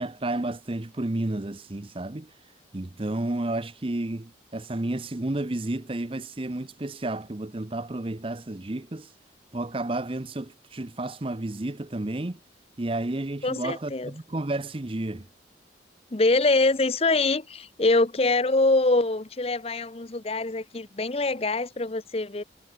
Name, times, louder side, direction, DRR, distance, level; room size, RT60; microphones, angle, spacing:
voice 1, 0.0-2.3 2.7-9.1 9.5-12.4 12.8-15.3, right 2 dB, 30° right, 0.7 m, -31 dB
voice 2, 13.4-14.1 16.1-22.4, left 2 dB, 30° left, 0.8 m, -24 dB
head